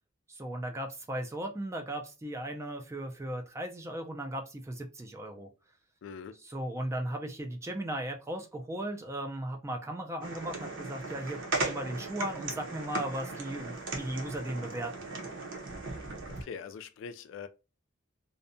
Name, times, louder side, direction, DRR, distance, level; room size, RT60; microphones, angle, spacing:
voice 1, 0.3-5.5 6.4-15.1, right 1 dB, 15° right, 0.4 m, -37 dB
voice 2, 6.0-6.3 16.4-17.5, left 6 dB, 65° left, 0.3 m, -42 dB
sound 1, 10.2-16.4, right 3 dB, 65° right, 0.7 m, -37 dB
2.6 x 2.2 x 2.5 m
head